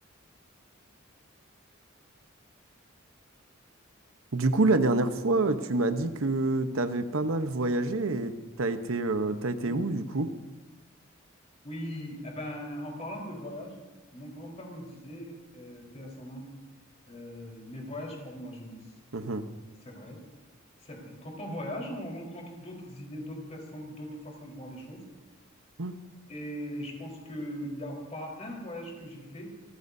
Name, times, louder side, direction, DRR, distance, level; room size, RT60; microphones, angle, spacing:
voice 1, 4.3-8.3 8.6-10.3 19.1-19.4 25.8-25.9, right 2 dB, 90° right, 9 dB, 1.0 m, -27 dB
voice 2, 9.2-9.8 11.6-13.8 14.1-16.5 17.1-18.8 19.8-20.2 20.8-25.0 26.3-29.5, equal, 35° left, -1 dB, 4.2 m, -40 dB
27.0 x 15.0 x 2.7 m, 1.2 s
head